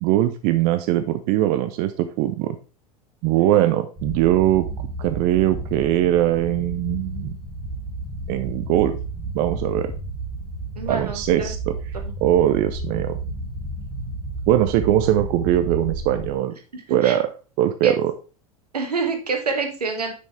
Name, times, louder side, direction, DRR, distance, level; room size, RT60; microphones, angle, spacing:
voice 1, 0.0-2.6 3.2-4.7 5.0-7.4 8.3-9.0 9.3-9.9 10.9-11.7 12.2-13.2 14.5-16.5 16.9-17.3 17.6-18.1, right 13 dB, 50° right, 10 dB, 0.6 m, -21 dB
sound 1, 4.0-16.3, right 2 dB, 20° right, 1.9 m, -32 dB
voice 2, 10.7-11.5 12.0-12.1 16.7-17.2 17.8-17.9 18.7-20.1, right 4 dB, 85° right, 4 dB, 1.3 m, -27 dB
6.5 x 6.3 x 3.3 m, 0.34 s
figure-of-eight pair, 85°, 20 cm